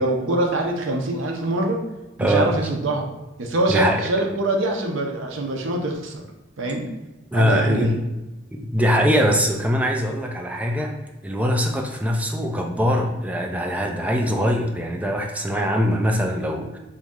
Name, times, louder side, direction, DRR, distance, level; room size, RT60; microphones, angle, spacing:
voice 1, 0.0-1.8 2.2-3.1 3.4-6.2 6.6-6.9 7.3-7.9, right 2 dB, 70° right, 2 dB, 0.6 m, -24 dB
voice 2, 2.2-2.5 3.7-4.0 7.3-8.0 8.5-11.0 11.2-16.8, equal, 5° right, 1 dB, 0.3 m, -22 dB
2.9 x 2.6 x 3.6 m, 1.0 s
head